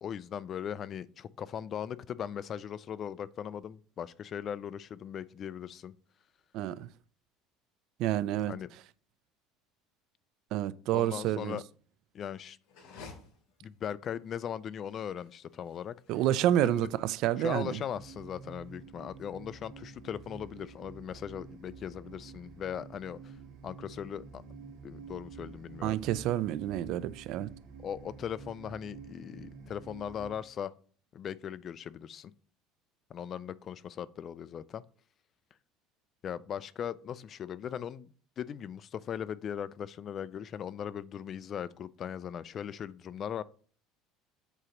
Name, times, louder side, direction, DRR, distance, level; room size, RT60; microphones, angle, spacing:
voice 1, 0.0-5.9 8.5-8.7 10.9-11.6 12.1-12.6 13.6-15.9 16.6-16.9 17.4-23.3 23.6-24.4 24.8-26.0 27.8-30.7 31.1-32.3 33.1-34.8 36.2-38.1 38.4-43.4, left 9 dB, 35° left, 0.3 m, -39 dB
voice 2, 6.5-6.9 8.0-8.5 10.5-11.6 16.1-17.8 25.8-27.5, right 12 dB, 60° right, 0.4 m, -29 dB
sound 1, 12.6-18.7, left 4 dB, 75° left, 2.5 m, -55 dB
sound 2, 17.9-30.4, right 5 dB, 85° right, 2.4 m, -49 dB
8.0 x 2.9 x 5.8 m
cardioid pair, 140°, 0 cm